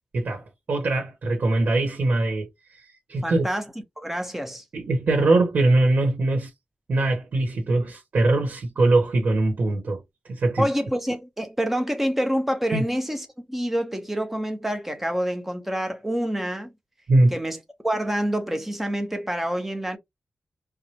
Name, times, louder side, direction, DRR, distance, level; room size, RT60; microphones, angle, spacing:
voice 1, 0.1-2.5 3.1-3.5 4.7-6.5 6.9-10.0 10.3-10.7 12.7-12.8 17.1-17.4, right 2 dB, 70° right, 1.3 m, -22 dB
voice 2, 3.2-3.7 4.0-4.6 10.6-16.7 17.3-17.6 17.8-20.0, equal, 5° right, 0.9 m, -27 dB
4.8 x 2.2 x 2.9 m
wide cardioid pair, 150°, 3 cm